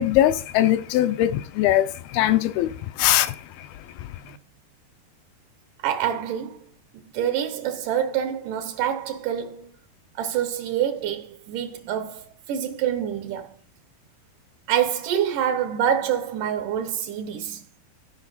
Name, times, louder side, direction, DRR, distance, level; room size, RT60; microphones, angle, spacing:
voice 1, 0.0-4.4, left 13 dB, 80° left, 2.3 m, -22 dB
voice 2, 5.8-6.7 6.9-9.7 10.2-13.6 14.7-17.6, right 9 dB, 85° right, 1.8 m, -26 dB
15.0 x 5.4 x 4.0 m
omnidirectional pair, 4.7 m